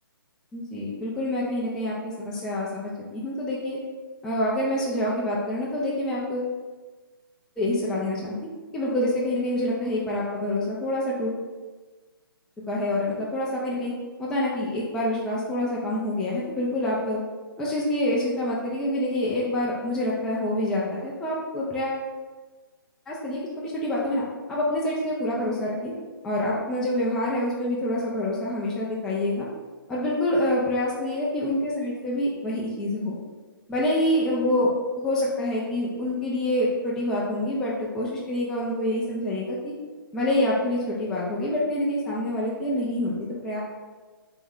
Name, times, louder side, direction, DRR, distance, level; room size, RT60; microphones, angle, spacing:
voice 1, 0.5-3.8 4.2-6.6 7.6-8.4 8.7-11.3 12.7-13.9 14.2-17.2 17.6-22.1 23.1-25.9 26.2-29.5 29.9-33.2 33.7-39.7 40.1-43.1 43.4-43.6, left 1 dB, 5° left, -6 dB, 0.4 m, -26 dB
3.5 x 3.0 x 3.5 m, 1.3 s
figure-of-eight pair, 140°, 12 cm